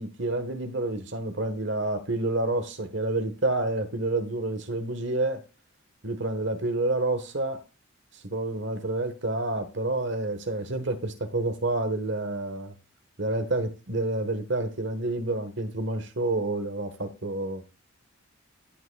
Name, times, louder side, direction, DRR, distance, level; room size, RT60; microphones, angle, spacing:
voice 1, 0.0-5.4 6.0-7.6 8.2-12.7 13.2-17.6, right 2 dB, 55° right, 8 dB, 1.4 m, -29 dB
16.5 x 6.0 x 2.3 m, 0.31 s
head